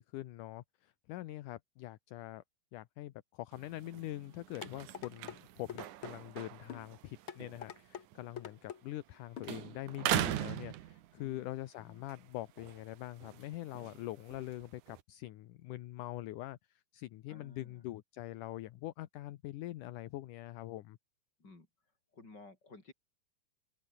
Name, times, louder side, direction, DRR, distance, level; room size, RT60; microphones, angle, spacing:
voice 1, 0.0-2.4 2.7-21.0, left 15 dB, 75° left, 2.3 m, -44 dB
sound 1, 3.5-9.2 9.4-11.5 11.9-15.0, right 13 dB, 65° right, 2.4 m, -41 dB
sound 2, 4.6-5.4 5.7-6.1 6.7-6.9 7.3-8.1 8.4-8.8 9.4-9.5 9.9-10.0, left 9 dB, 50° left, 1.7 m, -45 dB
voice 2, 11.2-11.5 11.7-12.0 17.3-17.8 21.4-21.7 22.1-22.9, left 3 dB, 30° left, 5.9 m, -55 dB
open air
omnidirectional pair, 4.0 m